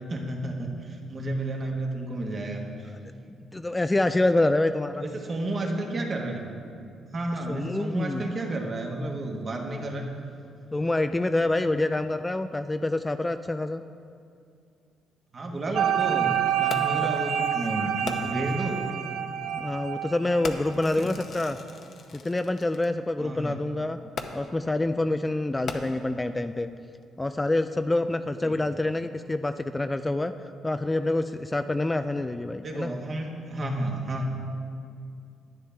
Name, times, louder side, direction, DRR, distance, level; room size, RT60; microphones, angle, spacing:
voice 1, 0.1-2.9 5.0-6.5 7.1-10.1 15.3-18.8 20.8-21.2 23.2-23.6 28.4-28.6 32.6-34.3, right 1 dB, 40° right, 1 dB, 1.5 m, -31 dB
voice 2, 3.4-5.0 7.5-8.2 10.7-13.8 16.9-17.0 19.5-21.6 22.1-24.0 24.3-26.7 27.2-30.3 30.6-32.9, left 2 dB, 15° left, 9 dB, 0.3 m, -26 dB
sound 1, 15.7-20.9, right 10 dB, 70° right, 0.5 m, -28 dB
Fireworks, 16.7-17.1 18.1-18.6 19.4-19.6 20.4-22.9 24.2-24.7 25.5-26.3 27.0-27.1, left 4 dB, 60° left, 0.8 m, -39 dB
11.0 x 10.0 x 3.5 m, 2.4 s
cardioid pair, 90°, 0 cm